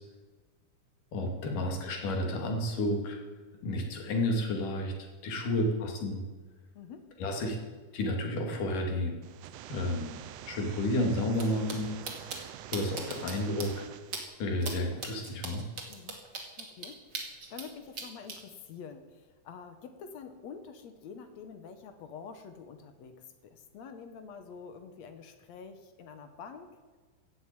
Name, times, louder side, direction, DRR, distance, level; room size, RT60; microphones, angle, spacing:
voice 1, 1.1-3.2 3.6-4.9 5.2-6.2 7.2-7.6 7.9-9.2 9.7-10.2 10.5-11.9 12.2-12.4 12.7-13.9 14.4-15.6, left 1 dB, 80° left, 2 dB, 3.9 m, -31 dB
voice 2, 6.7-7.1 15.9-16.2 16.6-26.8, left 6 dB, 65° left, 8 dB, 2.1 m, -47 dB
sound 1, 9.2-14.2, right 12 dB, 85° right, 2.2 m, -46 dB
sound 2, 11.3-11.4 11.7-11.8 12.0-12.4 12.7-13.3 13.6-13.7 14.1-14.2 14.6-14.7 15.0-17.7 17.9-18.4, right 4 dB, 35° right, 2.4 m, -38 dB
16.0 x 7.9 x 8.9 m, 1.3 s
omnidirectional pair, 3.7 m